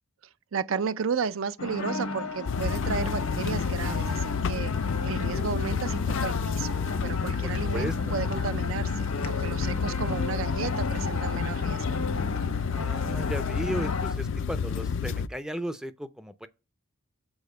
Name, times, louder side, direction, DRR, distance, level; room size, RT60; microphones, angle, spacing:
voice 1, 0.5-4.7 5.0-6.8 7.0-12.0, right 6 dB, 70° right, 0.5 m, -33 dB
sound 1, 1.6-14.1, left 3 dB, 85° left, 1.2 m, -35 dB
sound 2, 2.5-15.3, left 6 dB, 60° left, 0.4 m, -30 dB
voice 2, 7.4-8.1 12.7-16.5, right 1 dB, 5° right, 0.5 m, -35 dB
7.1 x 4.3 x 6.5 m
head